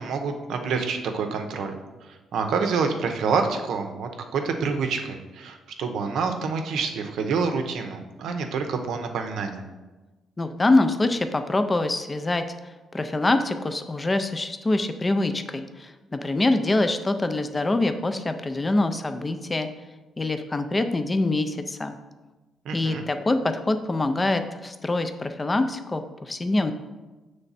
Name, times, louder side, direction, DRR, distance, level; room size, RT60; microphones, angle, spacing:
voice 1, 0.0-1.8 2.1-9.7 22.6-23.0, right 5 dB, 70° right, 6 dB, 0.6 m, -27 dB
voice 2, 10.4-19.7 20.2-22.0 22.7-26.7, left 2 dB, 15° left, 8 dB, 0.3 m, -25 dB
7.2 x 3.3 x 4.0 m, 1.2 s
cardioid pair, 160°, 0 cm